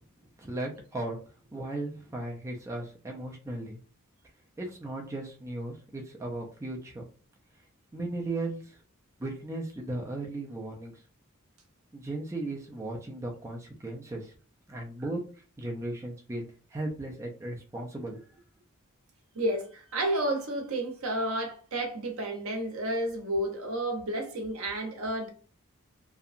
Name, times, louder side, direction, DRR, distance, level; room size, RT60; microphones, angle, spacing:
voice 1, 0.4-1.2 1.5-3.8 4.6-7.1 7.9-8.8 9.2-10.9 11.9-14.3 14.7-15.2 15.6-16.4 16.7-18.4, right 2 dB, 15° right, 0.4 m, -36 dB
voice 2, 19.3-25.3, right 1 dB, 70° right, 0.7 m, -31 dB
2.7 x 2.2 x 2.4 m
head